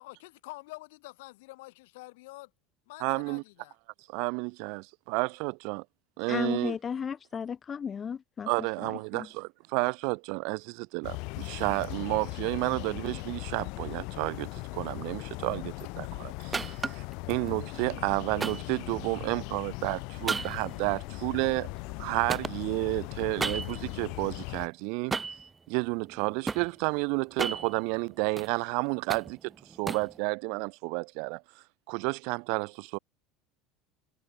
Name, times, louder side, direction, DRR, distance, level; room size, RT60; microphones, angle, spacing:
voice 1, 0.0-2.5 2.9-3.7, left 22 dB, 80° left, 3.6 m, -47 dB
voice 2, 3.0-3.4 4.1-5.8 6.2-6.7 8.5-21.7 22.0-25.2 25.7-29.5 29.8-31.4 31.9-33.0, right 35 dB, 60° right, 0.4 m, -31 dB
voice 3, 6.3-8.5 8.8-9.3, left 7 dB, 20° left, 0.8 m, -34 dB
sound 1, 11.0-24.7, left 29 dB, 55° left, 1.1 m, -39 dB
sound 2, 16.5-17.1 18.4-19.4 20.3-22.0 22.3-23.9 25.1-25.5 26.0-26.7 27.2-28.5 28.9-30.2, right 4 dB, 10° right, 0.8 m, -35 dB
cardioid pair, 170°, 0 cm